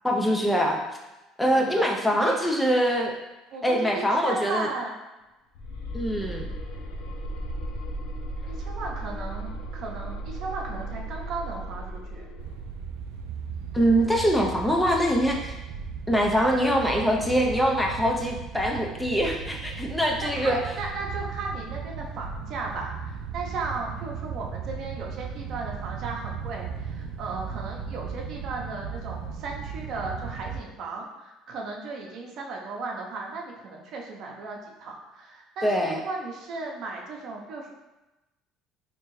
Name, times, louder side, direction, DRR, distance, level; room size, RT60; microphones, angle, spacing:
voice 1, 0.0-0.8 1.4-3.1 3.6-4.7 5.9-6.5 13.7-15.6 16.1-20.6 35.6-36.0, equal, 5° left, 0 dB, 0.5 m, -23 dB
voice 2, 1.5-2.6 3.5-5.0 8.5-12.3 20.2-37.7, right 3 dB, 60° right, -1 dB, 0.7 m, -36 dB
sound 1, 5.5-12.8, right 1 dB, 80° left, 0.5 m, -35 dB
sound 2, 12.4-30.6, right 6 dB, 85° right, 0.3 m, -36 dB
3.4 x 3.0 x 3.1 m, 1.0 s
supercardioid pair, 100°, 0 cm